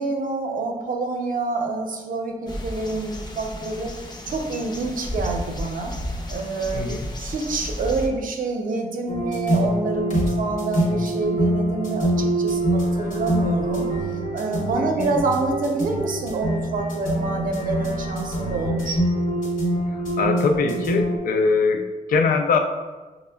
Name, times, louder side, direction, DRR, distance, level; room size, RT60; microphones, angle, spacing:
voice 1, 0.0-3.9 4.3-5.9 6.3-6.9 7.2-13.9 14.3-19.0, right 3 dB, 70° right, 2 dB, 0.5 m, -27 dB
sound 1, 2.5-8.1, equal, 30° left, 0.5 m, -33 dB
voice 2, 6.7-7.1 14.8-15.1 19.9-22.6, left 4 dB, 85° left, 5 dB, 0.4 m, -22 dB
sound 2, 9.1-21.2, right 1 dB, 60° left, 0.8 m, -25 dB
5.8 x 2.0 x 2.2 m, 1.3 s
wide cardioid pair, 110°, 14 cm